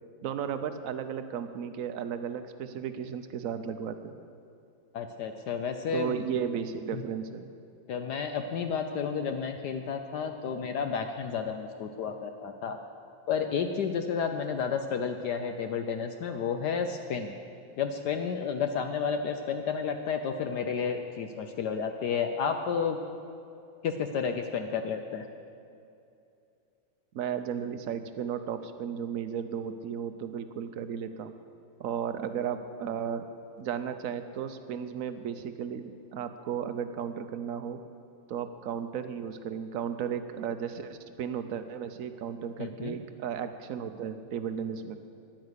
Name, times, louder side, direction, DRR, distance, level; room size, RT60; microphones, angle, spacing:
voice 1, 0.2-4.1 5.9-7.5 27.1-31.3 31.8-33.2 33.6-37.8 38.3-45.0, right 8 dB, 65° right, 9 dB, 0.9 m, -34 dB
voice 2, 4.9-6.3 6.9-7.0 7.9-12.8 13.3-17.3 17.8-23.0 23.8-25.2 42.6-43.0, left 6 dB, 70° left, 6 dB, 1.2 m, -31 dB
11.0 x 10.5 x 8.1 m, 2.6 s
omnidirectional pair, 2.1 m